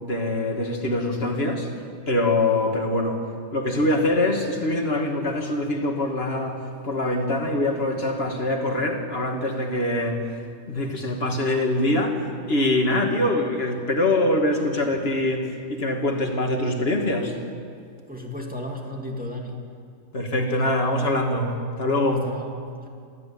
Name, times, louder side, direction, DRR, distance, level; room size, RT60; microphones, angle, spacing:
voice 1, 0.0-1.7 2.1-3.2 3.5-10.2 10.7-12.2 12.5-17.4 20.1-21.5 21.8-22.3, left 1 dB, 45° left, 3 dB, 2.5 m, -24 dB
voice 2, 18.1-19.6 20.5-20.7 22.1-22.6, left 1 dB, 5° right, 0 dB, 2.7 m, -34 dB
24.5 x 15.0 x 8.7 m, 2.3 s
omnidirectional pair, 1.5 m